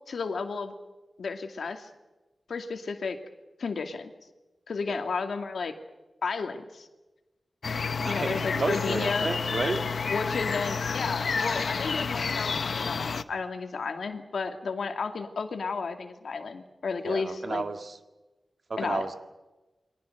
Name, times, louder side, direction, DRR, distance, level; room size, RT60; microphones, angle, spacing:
voice 1, 0.1-0.7 1.2-1.9 2.5-3.2 3.6-4.1 4.7-5.7 6.2-6.9 8.1-9.3 10.1-17.6 18.8-19.1, left 4 dB, 85° left, 6 dB, 2.3 m, -32 dB
sound 1, 7.6-13.2, left 5 dB, 70° left, 0.9 m, -30 dB
voice 2, 8.0-9.8 17.0-18.0 18.7-19.1, right 3 dB, 50° right, 7 dB, 2.0 m, -32 dB
29.0 x 22.5 x 6.7 m, 1.1 s
wide cardioid pair, 125°, 0 cm